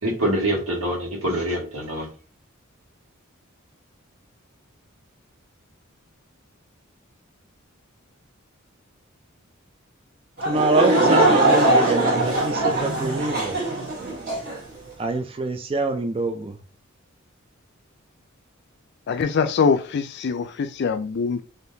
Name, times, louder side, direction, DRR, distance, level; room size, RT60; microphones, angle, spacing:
voice 1, 0.0-2.1, right 1 dB, 90° right, 1.4 m, -25 dB
voice 2, 10.4-13.6 15.0-16.6, right 3 dB, 25° right, 0.3 m, -25 dB
Laughter / Crowd, 10.4-14.6, right 2 dB, 45° right, 1.3 m, -21 dB
voice 3, 19.1-21.4, left 5 dB, 55° left, 0.4 m, -23 dB
3.5 x 2.6 x 2.7 m
head